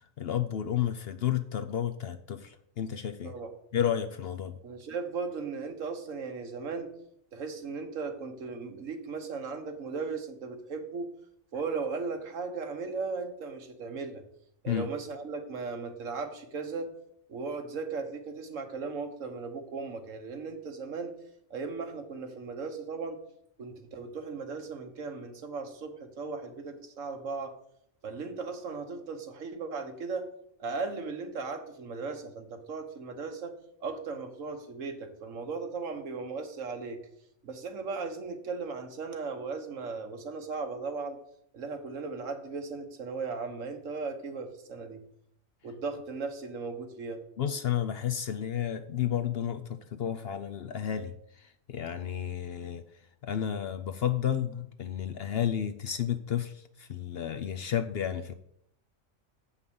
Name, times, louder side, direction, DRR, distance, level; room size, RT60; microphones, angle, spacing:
voice 1, 0.2-3.3 3.7-4.6 14.7-14.9 47.4-51.1 51.4-52.8 53.2-58.3, left 9 dB, 60° left, 9 dB, 0.7 m, -31 dB
voice 2, 4.6-6.9 7.3-11.1 11.5-14.2 14.6-16.9 17.3-21.2 21.5-23.2 23.6-27.5 28.0-30.3 30.6-37.0 37.4-41.2 41.5-45.0 45.6-47.2, right 4 dB, 75° right, 6 dB, 1.5 m, -37 dB
8.1 x 5.7 x 7.0 m, 0.72 s
omnidirectional pair, 1.4 m